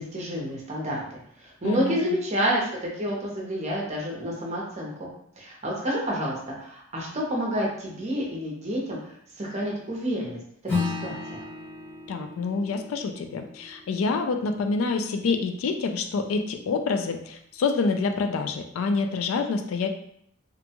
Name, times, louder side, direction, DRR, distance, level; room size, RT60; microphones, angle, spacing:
voice 1, 0.0-2.7 3.0-5.1 5.4-9.0 9.4-10.4 10.7-11.4, equal, 30° right, -3 dB, 0.7 m, -29 dB
voice 2, 1.6-2.0 12.1-19.9, left 4 dB, 70° left, 5 dB, 0.3 m, -27 dB
Acoustic guitar / Strum, 10.7-15.5, left 4 dB, 10° left, 1.0 m, -34 dB
2.5 x 2.2 x 2.8 m, 0.71 s
head